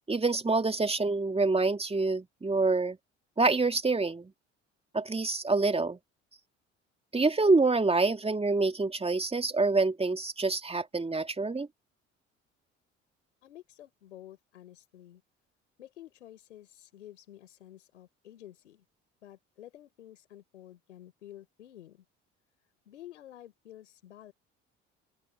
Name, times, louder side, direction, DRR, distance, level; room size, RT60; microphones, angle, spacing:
voice 1, 0.1-3.0 3.4-4.3 4.9-6.0 7.1-11.7, right 3 dB, 15° right, 2.4 m, -26 dB
voice 2, 13.4-15.2 15.8-18.8 19.2-22.0 22.8-24.3, left 12 dB, 80° left, 4.9 m, -51 dB
open air
figure-of-eight pair, 55°, 36 cm